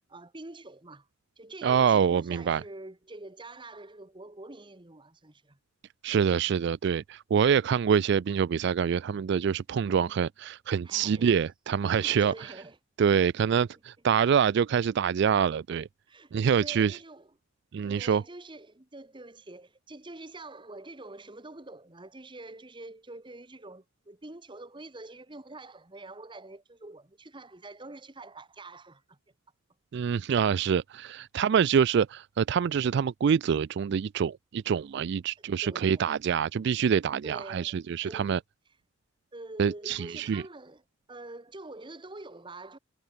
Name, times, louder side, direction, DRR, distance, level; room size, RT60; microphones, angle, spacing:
voice 1, 0.1-1.1 1.4-5.6 9.7-10.2 10.8-11.3 11.8-12.8 16.1-17.3 17.8-29.2 35.6-36.2 37.2-38.3 39.3-40.8 41.1-42.8, right 2 dB, 25° right, 1.4 m, -46 dB
voice 2, 1.6-2.6 6.0-12.5 13.0-15.9 16.3-17.0 17.7-18.2 29.9-38.4 39.6-40.4, right 7 dB, 60° right, 0.3 m, -26 dB
head